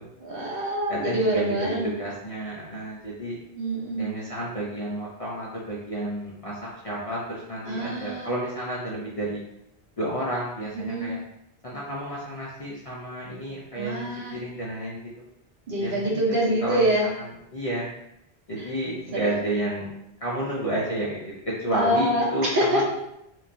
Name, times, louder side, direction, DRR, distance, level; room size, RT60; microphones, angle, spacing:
voice 1, 0.2-2.0 3.6-4.1 7.6-8.3 10.7-11.1 13.7-14.4 15.7-17.1 18.6-18.7 19.1-19.4 21.7-22.8, right 1 dB, 60° right, -2 dB, 0.8 m, -25 dB
voice 2, 0.9-3.4 4.0-9.4 10.0-11.2 11.6-15.0 15.8-16.1 16.6-17.1 17.5-17.9 18.5-19.9 20.2-22.8, right 1 dB, 45° left, -6 dB, 0.5 m, -31 dB
3.1 x 2.1 x 2.5 m, 0.82 s
omnidirectional pair, 1.1 m